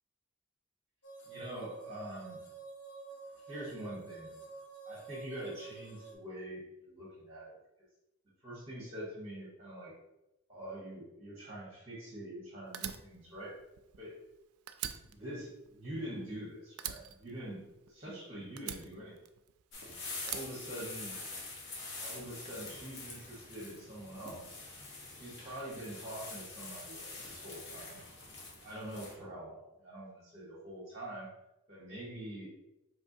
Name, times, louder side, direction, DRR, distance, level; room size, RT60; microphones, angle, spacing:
sound 1, 1.0-6.1, right 4 dB, 85° left, 0.9 m, -49 dB
voice 1, 1.3-2.4 3.5-4.4 4.9-7.5 8.4-9.9 10.5-13.6 14.0-14.2 15.0-19.2 20.2-21.1 22.0-24.6 25.1-28.0 28.6-31.3 31.7-32.5, right 1 dB, 30° right, -6 dB, 1.1 m, -45 dB
Fire, 12.7-14.4 14.7-16.4 16.8-18.1 18.6-19.7 20.2-21.4, right 10 dB, 85° right, 0.3 m, -43 dB
sound 2, 19.7-29.1, left 3 dB, 55° left, 0.9 m, -45 dB
4.3 x 3.2 x 2.7 m, 0.90 s
head